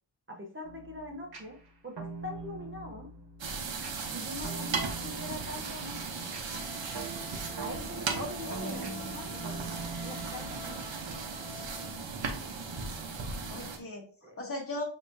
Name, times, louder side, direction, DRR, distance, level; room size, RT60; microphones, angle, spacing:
voice 1, 0.3-1.6 1.8-1.9 2.2-3.1 4.1-6.0 7.6-9.4 10.0-10.8 13.8-13.9 14.2-14.4, left 1 dB, 25° right, 1 dB, 0.9 m, -43 dB
sound 1, 0.6-11.2, right 3 dB, 55° right, 1.3 m, -44 dB
sound 2, 3.4-13.8, right 4 dB, 80° right, 1.0 m, -37 dB
Wind instrument woodwind instrument, 6.5-12.0, left 6 dB, 75° left, 0.6 m, -49 dB
voice 2, 8.2-8.8 13.5-14.8, left 1 dB, 30° left, -1 dB, 1.6 m, -38 dB
6.5 x 3.0 x 2.7 m, 0.41 s
wide cardioid pair, 85°, 45 cm